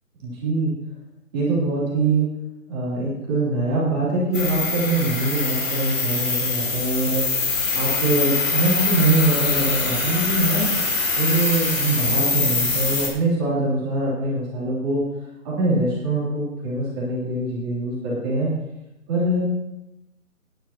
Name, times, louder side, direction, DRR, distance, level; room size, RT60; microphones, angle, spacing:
voice 1, 0.2-0.7 1.3-2.3 2.7-7.3 7.7-10.7 11.2-15.0 15.4-18.5 19.1-19.4, right 2 dB, 15° right, -8 dB, 3.1 m, -23 dB
sound 1, 4.3-13.1, left 3 dB, 60° left, 4.0 m, -23 dB
15.5 x 10.5 x 3.0 m, 0.95 s
hypercardioid pair, 165°, 42 cm